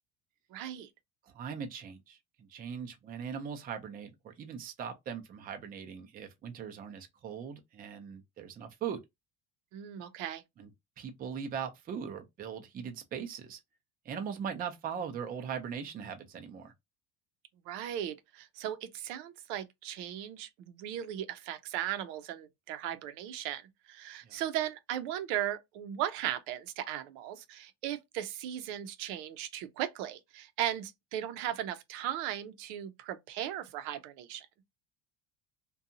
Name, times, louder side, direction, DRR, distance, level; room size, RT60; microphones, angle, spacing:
voice 1, 0.5-0.9 9.7-10.4 17.6-34.5, right 11 dB, 85° right, 0.6 m, -37 dB
voice 2, 1.3-9.0 10.6-10.7 11.0-13.6 14.1-16.7 24.2-24.4, right 7 dB, 25° right, 0.4 m, -40 dB
2.7 x 2.3 x 2.6 m
cardioid pair, 140°, 37 cm